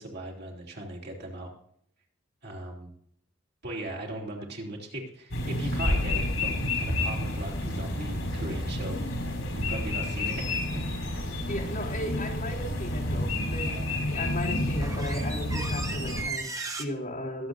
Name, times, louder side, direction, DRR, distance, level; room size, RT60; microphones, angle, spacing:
voice 1, 0.0-1.5 2.4-2.9 3.6-9.2 9.5-10.8 11.1-11.2 13.6-14.0, right 1 dB, 55° right, 0 dB, 3.0 m, -39 dB
sound 1, 5.3-16.2, left 1 dB, 80° left, 5.0 m, -30 dB
sound 2, 10.3-10.4 14.0-14.1 14.4-16.8, right 3 dB, 15° right, 1.1 m, -36 dB
voice 2, 11.5-17.5, left 1 dB, 45° left, -3 dB, 3.7 m, -36 dB
22.0 x 7.9 x 2.6 m, 0.68 s
head